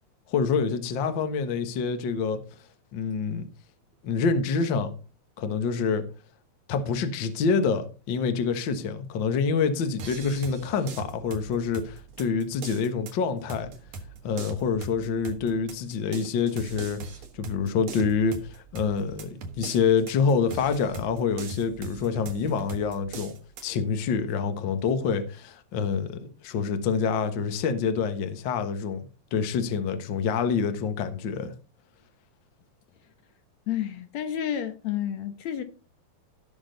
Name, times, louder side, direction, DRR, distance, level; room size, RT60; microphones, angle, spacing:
voice 1, 0.3-2.4 2.9-3.5 4.0-4.9 5.4-6.1 6.7-13.7 14.2-17.0 17.3-23.3 23.6-29.0 29.3-31.5, left 5 dB, 50° left, 1.6 m, -26 dB
sound 1, 10.0-23.7, right 4 dB, 70° right, 3.0 m, -41 dB
voice 2, 33.7-35.6, left 10 dB, 70° left, 2.2 m, -30 dB
16.5 x 6.2 x 3.9 m
omnidirectional pair, 3.4 m